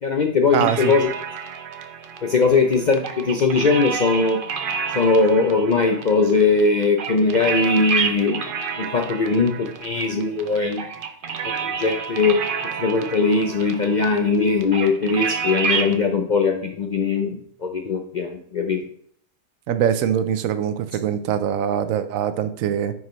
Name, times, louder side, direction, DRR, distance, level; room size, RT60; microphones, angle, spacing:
voice 1, 0.0-1.1 2.2-4.4 4.9-8.5 8.8-10.8 11.4-12.4 12.8-18.8, left 4 dB, 60° left, 3 dB, 0.5 m, -20 dB
sound 1, 0.5-16.0, right 5 dB, 50° right, 0.7 m, -29 dB
voice 2, 0.5-0.9 19.7-22.9, right 9 dB, 80° right, 11 dB, 1.0 m, -23 dB
9.3 x 4.8 x 3.1 m, 0.66 s
omnidirectional pair, 1.4 m